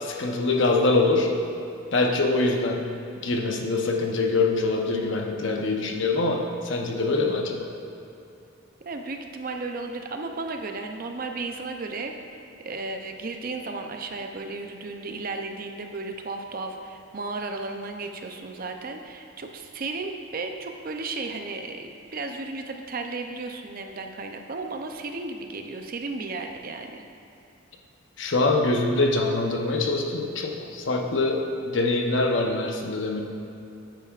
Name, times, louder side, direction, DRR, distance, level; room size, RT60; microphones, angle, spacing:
voice 1, 0.0-1.3 1.9-2.9 3.2-7.7 28.2-33.2, left 3 dB, 60° left, 1 dB, 0.8 m, -24 dB
voice 2, 8.8-12.2 12.6-27.0, right 3 dB, 45° right, 4 dB, 0.5 m, -34 dB
9.1 x 8.9 x 2.5 m, 2.8 s
head